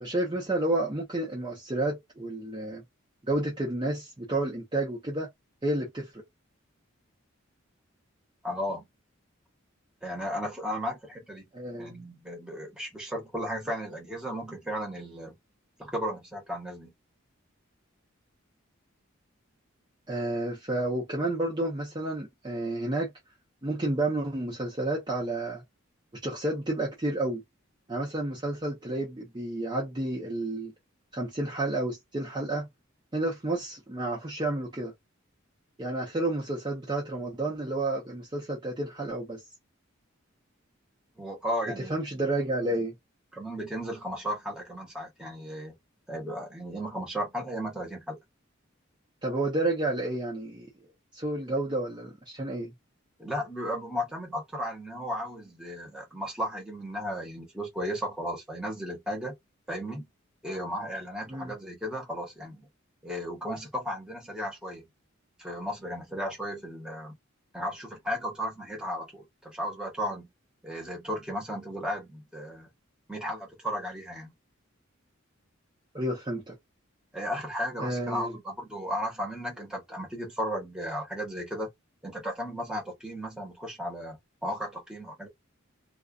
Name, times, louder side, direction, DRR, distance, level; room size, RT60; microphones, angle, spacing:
voice 1, 0.0-2.8 3.2-5.3 5.6-6.2 11.5-12.0 20.1-23.1 23.6-25.6 26.2-27.4 27.9-30.7 31.1-32.7 33.1-34.9 35.8-39.4 41.9-42.9 49.2-50.7 51.1-52.7 61.3-61.5 75.9-76.5 77.8-78.3, right 2 dB, 20° right, 0.6 m, -30 dB
voice 2, 8.4-8.9 10.0-11.5 11.8-15.4 15.8-16.9 41.2-41.9 43.3-45.7 46.1-48.2 53.2-59.3 59.7-60.1 60.4-62.7 63.0-64.9 65.4-67.1 67.5-70.3 70.6-72.7 73.1-74.3 77.1-81.7 82.0-85.3, equal, 5° right, 1.0 m, -35 dB
2.4 x 2.3 x 2.3 m
head